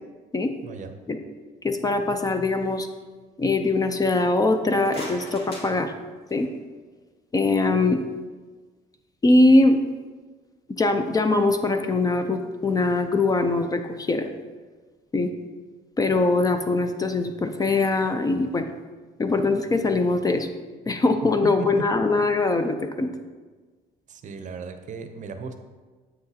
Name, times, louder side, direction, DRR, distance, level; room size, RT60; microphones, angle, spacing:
voice 1, 1.6-2.9 3.4-5.9 6.3-6.5 7.3-8.0 9.2-9.8 10.8-14.3 15.1-15.3 16.0-18.7 19.2-20.5 20.9-23.1, left 2 dB, 20° left, 7 dB, 0.4 m, -22 dB
sound 1, 4.7-6.6, left 1 dB, 70° left, 2.1 m, -40 dB
voice 2, 24.1-25.6, right 5 dB, 45° right, 8 dB, 0.6 m, -36 dB
7.6 x 6.0 x 2.8 m, 1.4 s
cardioid pair, 110°, 17 cm